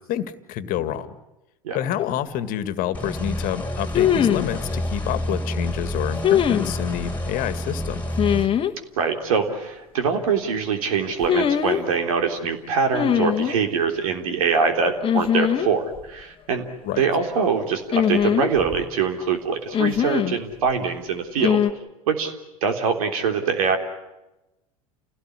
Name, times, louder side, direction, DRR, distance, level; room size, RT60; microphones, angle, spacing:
voice 1, 0.1-1.2 1.7-8.0 16.8-17.0, left 11 dB, 50° left, 13 dB, 1.9 m, -28 dB
sound 1, 2.0-2.1 3.9-4.5 6.2-6.7 8.2-8.7 11.2-11.8 12.9-13.6 15.0-15.7 15.9-16.0 17.9-18.8 19.7-20.4 21.4-21.7, left 9 dB, 30° left, 1.5 m, -21 dB
sound 2, 2.9-8.5, left 1 dB, 10° left, 3.8 m, -29 dB
voice 2, 9.0-16.6 17.0-21.6 22.1-22.3 22.6-23.8, right 5 dB, 70° right, 6 dB, 3.5 m, -23 dB
29.5 x 17.5 x 9.9 m, 0.98 s
hypercardioid pair, 85°, 18 cm